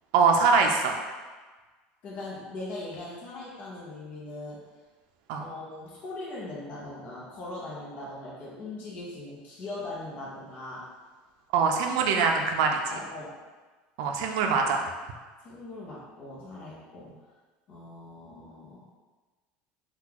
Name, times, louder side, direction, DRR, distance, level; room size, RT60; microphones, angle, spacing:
voice 1, 0.1-1.0 5.3-5.5 11.5-12.8 14.0-14.8, right 5 dB, 75° right, 2 dB, 0.4 m, -23 dB
voice 2, 2.0-4.6 5.4-10.9 12.9-13.4 15.4-17.1 17.7-18.9, left 2 dB, 40° left, -6 dB, 0.7 m, -40 dB
3.7 x 2.3 x 2.9 m, 1.3 s
cardioid pair, 165°, 4 cm